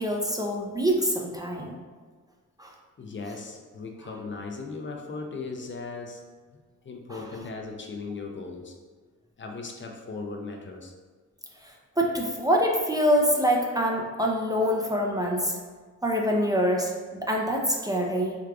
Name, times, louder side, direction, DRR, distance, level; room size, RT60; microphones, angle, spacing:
voice 1, 0.0-1.8 2.6-2.7 11.6-15.6 16.0-18.4, equal, 10° right, -1 dB, 0.5 m, -25 dB
voice 2, 3.0-6.3 6.8-8.7 9.4-10.9, left 3 dB, 40° left, 2 dB, 0.5 m, -37 dB
4.6 x 2.4 x 2.3 m, 1.4 s
cardioid pair, 60°, 31 cm